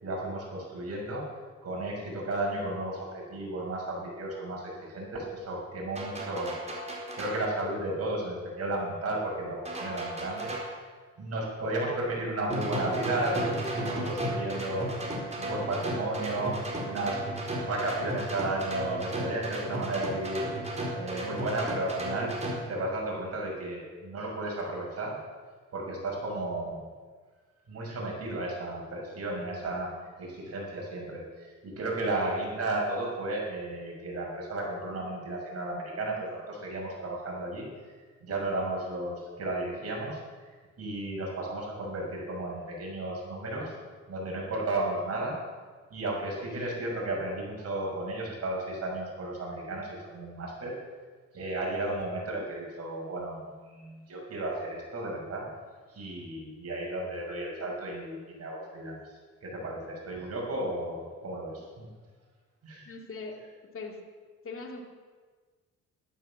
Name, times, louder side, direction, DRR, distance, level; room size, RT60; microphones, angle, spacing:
voice 1, 0.0-1.2 1.6-6.5 7.2-10.5 11.2-14.9 15.4-16.6 16.8-17.2 17.6-20.5 20.9-22.3 22.7-25.2 25.7-26.8 27.7-29.9 30.2-37.7 38.2-40.2 40.8-43.7 44.1-45.4 45.9-50.8 51.3-55.5 55.9-59.0 59.4-61.9 62.6-62.8, right 2 dB, 55° right, -2 dB, 6.2 m, -33 dB
sound 1, 5.9-7.4 9.6-10.8 12.5-22.6, right 1 dB, 20° right, 4.2 m, -34 dB
voice 2, 62.8-63.4 63.7-64.0 64.4-64.8, left 4 dB, 45° left, 2 dB, 2.8 m, -40 dB
12.5 x 12.0 x 7.3 m, 1.5 s
cardioid pair, 90°, 30 cm